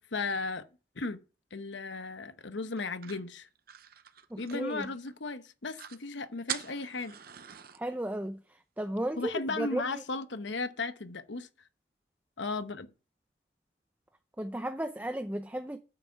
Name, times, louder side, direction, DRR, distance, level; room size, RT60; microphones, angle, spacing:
voice 1, 0.1-0.6 1.0-1.2 1.5-3.5 4.4-7.2 9.2-11.5 12.4-12.9, left 3 dB, 70° left, 1.0 m, -35 dB
sound 1, 2.8-5.1 5.5-5.6 5.7-6.0 6.5-7.8, right 10 dB, 50° right, 0.7 m, -42 dB
voice 2, 4.3-4.9 7.7-10.0 14.4-15.8, right 1 dB, 10° right, 0.6 m, -35 dB
9.0 x 7.8 x 4.7 m
head